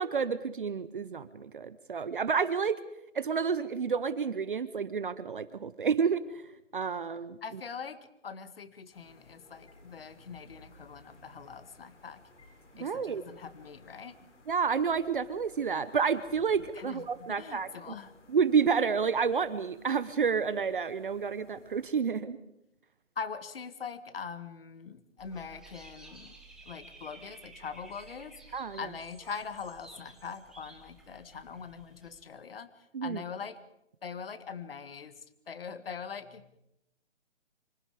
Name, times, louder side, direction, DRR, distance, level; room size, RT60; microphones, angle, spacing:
voice 1, 0.0-2.8 3.1-7.4 12.8-13.2 14.5-17.9 18.3-22.4 28.5-28.9 32.9-33.2, right 6 dB, 45° right, 15 dB, 1.0 m, -30 dB
voice 2, 7.4-12.2 12.8-14.2 16.8-17.0 17.3-18.1 23.2-26.3 26.7-33.6 34.0-35.1 35.5-36.6, left 6 dB, 50° left, 12 dB, 2.0 m, -42 dB
sound 1, 8.9-21.9, left 2 dB, 65° left, 6.9 m, -58 dB
Dog / Bird, 25.2-32.2, right 3 dB, ahead, 1.8 m, -53 dB
26.5 x 26.0 x 5.1 m, 0.81 s
hypercardioid pair, 165°, 37 cm